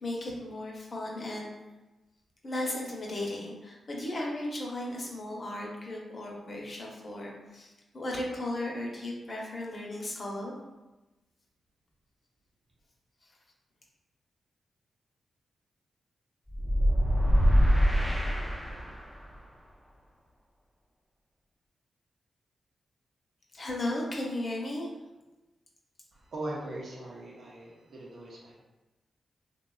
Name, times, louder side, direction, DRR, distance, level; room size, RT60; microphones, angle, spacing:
voice 1, 0.0-1.5 2.4-10.5 23.5-24.9, left 1 dB, 50° left, -2 dB, 0.6 m, -35 dB
sound 1, 16.5-19.2, equal, 5° right, 0.4 m, -24 dB
voice 2, 26.1-28.6, right 1 dB, 65° right, -4 dB, 0.7 m, -40 dB
2.7 x 2.2 x 2.3 m, 1.1 s
supercardioid pair, 45°, 0 cm